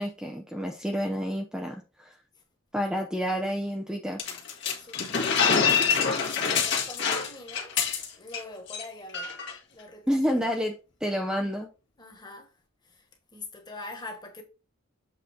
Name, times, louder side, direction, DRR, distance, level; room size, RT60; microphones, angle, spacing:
voice 1, 0.0-2.2 2.7-4.2 10.1-11.7, equal, 5° right, 0.7 m, -29 dB
sound 1, 4.2-8.4 8.7-8.8 9.1-9.5, left 6 dB, 55° left, 1.8 m, -26 dB
voice 2, 4.8-7.8 8.2-9.4 9.7-10.4 11.4-11.5 12.0-12.5 12.8-13.1 13.3-14.4, left 2 dB, 20° left, 1.6 m, -44 dB
7.8 x 4.1 x 4.4 m
head